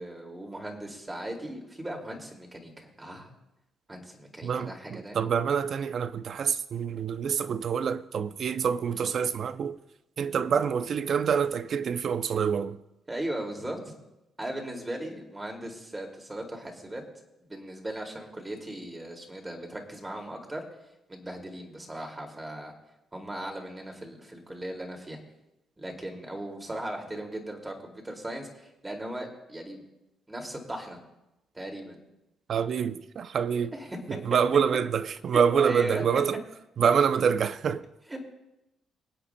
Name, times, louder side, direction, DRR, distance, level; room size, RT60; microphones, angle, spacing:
voice 1, 0.0-3.3 3.9-5.2 13.1-13.9 14.4-17.0 17.5-20.6 21.1-22.7 23.1-25.2 25.8-29.8 30.3-31.0 31.5-32.0 33.5-34.2 35.3-36.0 38.1-38.3, right 1 dB, 15° right, 2.4 m, -38 dB
voice 2, 4.4-9.8 10.2-12.8 32.5-33.8 34.1-36.4 36.8-37.9, right 7 dB, 55° right, 0.5 m, -26 dB
25.0 x 8.6 x 2.3 m
cardioid pair, 90°, 0 cm